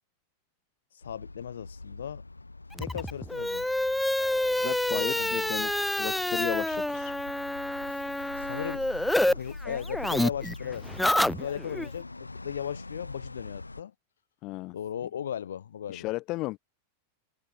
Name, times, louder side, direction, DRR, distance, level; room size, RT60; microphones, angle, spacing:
voice 1, 0.9-2.2 2.8-3.7 4.9-5.5 8.4-8.9 9.3-13.9 14.7-16.1, left 9 dB, 65° left, 2.5 m, -37 dB
sound 1, 1.0-13.8, left 3 dB, 80° left, 3.1 m, -44 dB
sound 2, 2.7-9.3 9.6-11.9, left 1 dB, 5° left, 0.8 m, -28 dB
voice 2, 4.6-5.7 6.0-7.1 14.4-14.7 15.9-16.6, left 20 dB, 40° left, 0.8 m, -34 dB
figure-of-eight pair, 90°, 0 cm